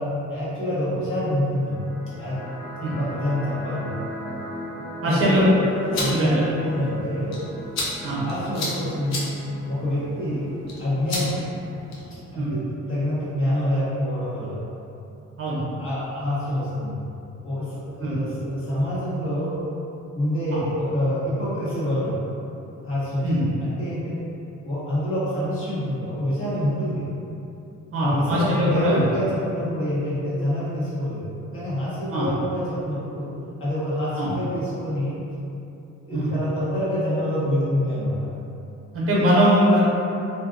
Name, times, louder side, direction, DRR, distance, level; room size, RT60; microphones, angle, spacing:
voice 1, 0.0-1.8 2.2-2.4 3.0-3.9 5.0-5.7 5.9-7.4 8.2-9.3 9.7-10.5 10.8-11.3 12.3-12.6 12.9-14.6 15.8-17.0 17.4-19.6 20.1-22.2 22.8-23.3 23.6-24.2 24.6-27.1 28.0-33.3 33.6-35.2 36.0-38.2, equal, 45° left, -11 dB, 1.3 m, -26 dB
sound 1, 1.6-12.6, right 1 dB, 5° left, 0.6 m, -38 dB
voice 2, 5.0-5.4 5.8-6.3 8.0-8.2 12.3-12.5 15.4-15.6 18.0-18.2 23.2-23.4 27.9-29.0 32.1-32.3 34.2-34.3 36.1-36.3 38.9-39.8, equal, 45° right, -7 dB, 0.8 m, -21 dB
sound 2, 5.7-12.2, left 2 dB, 60° left, 0.7 m, -34 dB
2.6 x 2.5 x 2.5 m, 2.8 s
cardioid pair, 90°, 30 cm